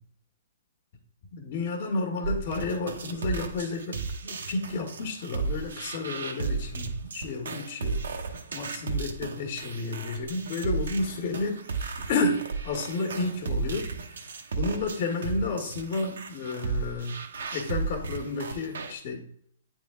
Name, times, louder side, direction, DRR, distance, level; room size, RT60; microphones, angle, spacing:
voice 1, 1.3-8.1 8.5-17.2 17.5-19.3, left 3 dB, 50° left, 2 dB, 1.2 m, -31 dB
sound 1, 2.2-18.9, right 4 dB, 75° right, 0.8 m, -34 dB
8.6 x 3.6 x 3.6 m, 0.65 s
hypercardioid pair, 130°, 0 cm